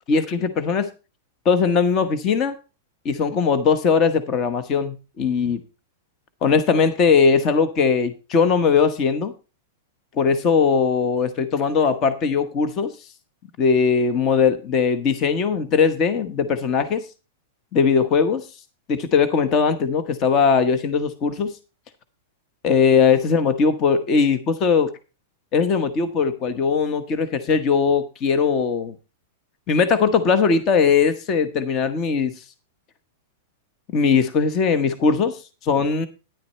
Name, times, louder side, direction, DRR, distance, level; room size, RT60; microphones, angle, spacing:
voice 1, 0.1-0.9 1.4-2.6 3.0-5.6 6.4-9.3 10.2-12.9 13.6-17.1 17.7-18.5 18.9-21.6 22.6-24.9 25.5-28.9 29.7-32.4 33.9-36.1, left 5 dB, 35° left, 11 dB, 1.0 m, -20 dB
10.0 x 9.6 x 4.2 m, 0.31 s
supercardioid pair, 140°, 0 cm